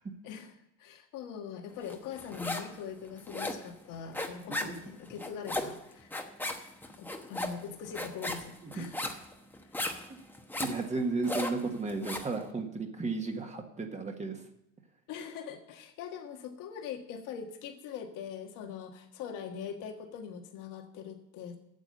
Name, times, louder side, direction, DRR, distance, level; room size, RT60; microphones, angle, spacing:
voice 1, 0.2-6.1 7.0-9.0 15.1-21.6, left 7 dB, 75° left, 4 dB, 1.6 m, -42 dB
sound 1, 1.9-2.8 3.0-12.4, left 1 dB, 5° left, 1.1 m, -37 dB
voice 2, 10.6-14.4, right 3 dB, 20° right, 4 dB, 1.6 m, -33 dB
9.1 x 7.2 x 7.9 m, 0.81 s
cardioid pair, 130°, 32 cm